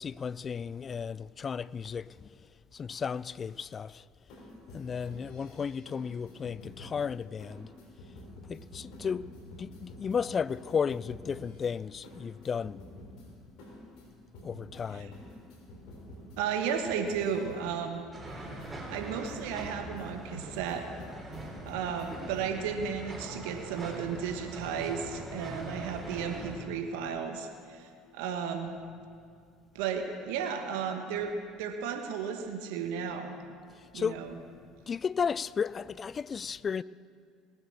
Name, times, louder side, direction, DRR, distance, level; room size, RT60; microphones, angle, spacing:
voice 1, 0.0-2.3 2.7-4.1 4.7-7.7 8.5-12.8 14.4-15.2 33.7-34.3 34.9-36.8, left 6 dB, 35° left, 0.3 m, -34 dB
sound 1, 4.2-22.7, left 1 dB, 65° left, 3.5 m, -50 dB
voice 2, 16.4-18.4 18.9-20.9 21.6-28.7 29.7-31.3 31.6-33.3 33.9-34.3, right 7 dB, 75° right, 1.2 m, -34 dB
sound 2, 18.1-26.5, right 1 dB, 15° right, 4.0 m, -42 dB
19.5 x 7.9 x 7.0 m
hypercardioid pair, 70°, 0 cm